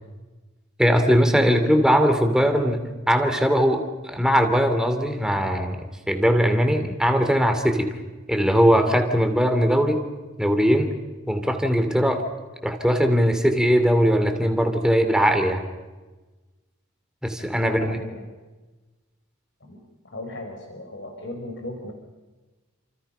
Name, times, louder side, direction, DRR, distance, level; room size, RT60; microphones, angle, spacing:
voice 1, 0.8-5.8 6.1-7.9 8.3-10.0 10.4-11.0 11.3-12.3 12.6-15.6 17.2-18.0, equal, 5° right, 6 dB, 2.8 m, -20 dB
voice 2, 17.6-18.3 19.6-19.8 20.1-21.9, left 1 dB, 55° left, 3 dB, 4.6 m, -36 dB
29.5 x 28.0 x 5.7 m, 1.2 s
head